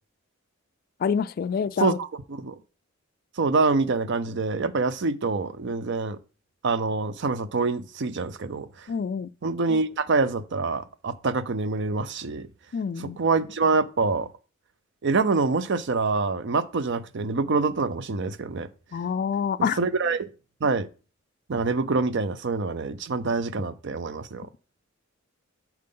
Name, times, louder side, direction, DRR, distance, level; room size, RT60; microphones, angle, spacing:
voice 1, 1.0-2.0 8.9-9.3 12.7-13.2 18.9-19.8, left 6 dB, 45° left, 0.3 m, -27 dB
voice 2, 3.4-6.2 6.6-8.9 9.4-12.5 13.0-14.3 15.0-18.7 19.6-20.3 20.6-20.9 21.5-24.5, right 4 dB, 60° right, 0.6 m, -26 dB
7.5 x 4.6 x 3.8 m
head